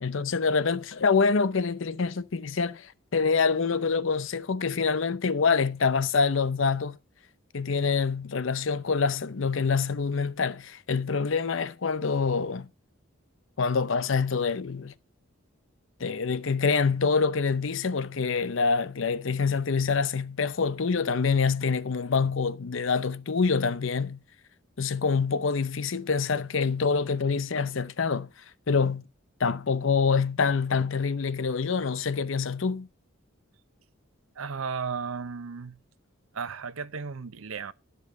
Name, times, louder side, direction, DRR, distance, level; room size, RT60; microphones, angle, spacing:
voice 1, 0.0-7.0 7.5-12.7 13.6-14.9 16.0-24.2 24.8-28.3 28.7-29.1 29.4-32.9, left 5 dB, 65° left, 0.6 m, -26 dB
voice 2, 34.4-35.8 36.3-37.7, right 5 dB, 85° right, 0.7 m, -34 dB
12.0 x 5.3 x 6.6 m
head